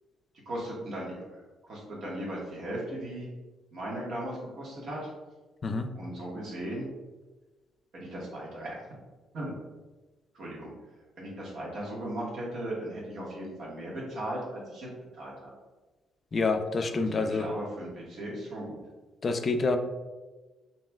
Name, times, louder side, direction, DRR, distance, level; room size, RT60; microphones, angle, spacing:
voice 1, 0.4-3.3 3.7-5.1 5.9-6.9 7.9-8.8 9.3-9.5 10.3-10.7 11.2-14.9 15.1-15.5 16.8-18.8, right 1 dB, 65° right, -4 dB, 1.5 m, -37 dB
voice 2, 16.3-17.5 19.2-19.8, left 3 dB, 40° left, 7 dB, 0.4 m, -27 dB
5.3 x 2.9 x 2.3 m, 1.2 s
cardioid pair, 90°, 0 cm